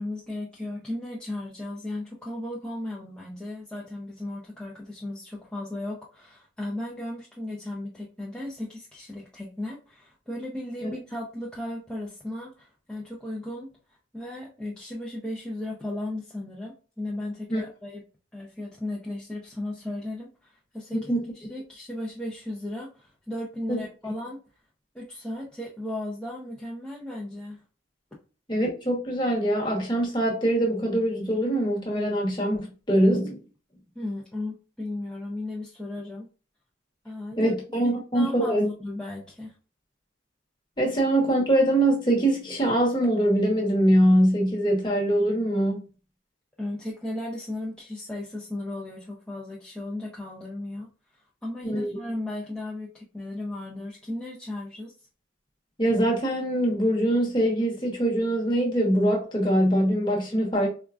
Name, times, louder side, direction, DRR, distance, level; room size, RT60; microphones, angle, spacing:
voice 1, 0.0-13.7 14.1-18.0 18.3-24.4 24.9-27.6 34.0-36.3 37.0-37.5 38.1-39.5 46.6-50.9 51.4-54.9, left 1 dB, 5° left, 0.5 m, -35 dB
voice 2, 23.7-24.1 28.5-33.4 37.4-38.6 40.8-45.8 51.6-51.9 55.8-60.7, right 1 dB, 25° left, 1.0 m, -23 dB
4.3 x 2.3 x 2.4 m
head